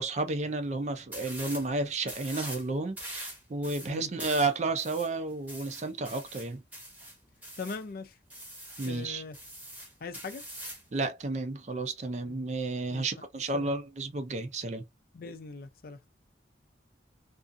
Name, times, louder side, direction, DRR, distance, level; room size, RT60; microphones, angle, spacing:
voice 1, 0.0-6.6 8.8-9.2 10.9-14.8, right 3 dB, 40° right, 0.4 m, -32 dB
sound 1, 1.1-1.7 2.0-2.7 3.0-7.8 8.3-9.0 9.3-10.9, right 1 dB, 10° right, 0.8 m, -43 dB
voice 2, 7.6-8.1 8.9-9.4 10.0-10.4 12.2-12.3 12.9-13.2 13.5-13.7 15.1-16.0, left 4 dB, 50° left, 0.4 m, -40 dB
2.5 x 2.4 x 2.4 m
head